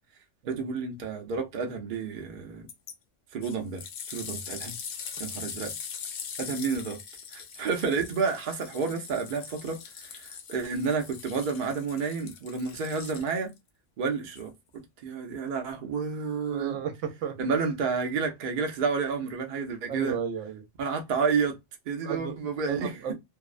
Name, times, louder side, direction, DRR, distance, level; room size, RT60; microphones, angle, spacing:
voice 1, 0.5-2.7 3.3-3.8 4.1-4.8 5.2-5.7 6.4-7.0 7.3-13.5 14.0-16.8 17.4-20.2 20.8-21.6 21.9-23.1, right 5 dB, 55° right, 0.6 m, -30 dB
sound 1, 2.7-2.9 3.4-13.6 14.4-14.5, left 7 dB, 80° left, 0.9 m, -41 dB
voice 2, 16.5-17.4 19.9-20.6 22.0-23.1, right 8 dB, 80° right, 0.9 m, -34 dB
2.6 x 2.0 x 2.3 m
omnidirectional pair, 1.3 m